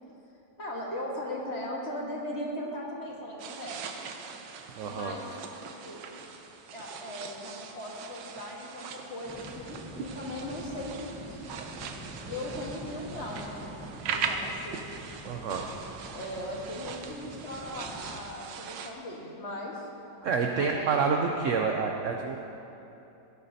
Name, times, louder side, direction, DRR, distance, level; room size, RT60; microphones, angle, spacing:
voice 1, 0.6-3.8 4.9-5.3 5.6-6.0 6.7-11.4 12.3-13.7 14.0-15.1 16.1-19.9 20.6-21.1, left 1 dB, 40° left, -2 dB, 1.6 m, -38 dB
sound 1, 3.4-18.9, right 6 dB, 85° right, 1.4 m, -40 dB
voice 2, 4.7-5.1 15.2-15.7 20.2-22.4, right 5 dB, 70° right, 2 dB, 0.7 m, -28 dB
sound 2, 9.2-18.2, equal, 5° right, 0.7 m, -45 dB
17.0 x 9.7 x 2.8 m, 2.9 s
omnidirectional pair, 1.9 m